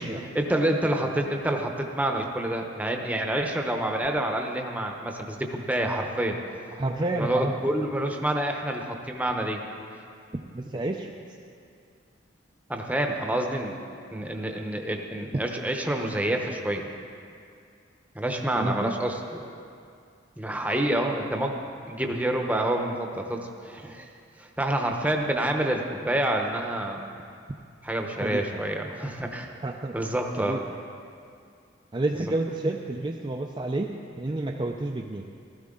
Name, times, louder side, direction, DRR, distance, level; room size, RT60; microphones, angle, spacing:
voice 1, 0.3-6.4 7.1-9.6 12.7-13.7 14.1-16.9 18.1-19.2 20.4-21.6 21.9-24.1 24.4-27.0 27.8-29.5 29.9-30.6, right 1 dB, 10° right, 2 dB, 0.9 m, -27 dB
voice 2, 6.7-7.5 10.5-11.2 18.6-18.9 28.2-28.4 29.6-29.9 30.4-30.6 31.9-35.2, right 2 dB, 25° right, 1 dB, 0.5 m, -30 dB
15.5 x 13.5 x 3.8 m, 2.4 s
head